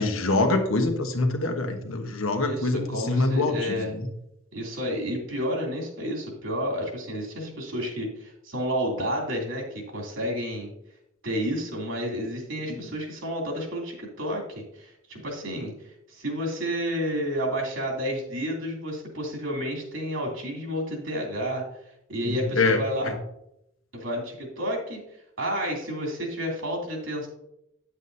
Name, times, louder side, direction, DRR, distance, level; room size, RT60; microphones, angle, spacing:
voice 1, 0.0-4.0 22.5-22.8, left 2 dB, 90° left, 5 dB, 1.2 m, -24 dB
voice 2, 2.4-3.9 4.5-10.7 11.2-21.6 22.1-23.1 23.9-25.0 25.4-27.3, equal, 70° right, -1 dB, 2.9 m, -30 dB
9.4 x 8.2 x 2.7 m, 0.80 s
head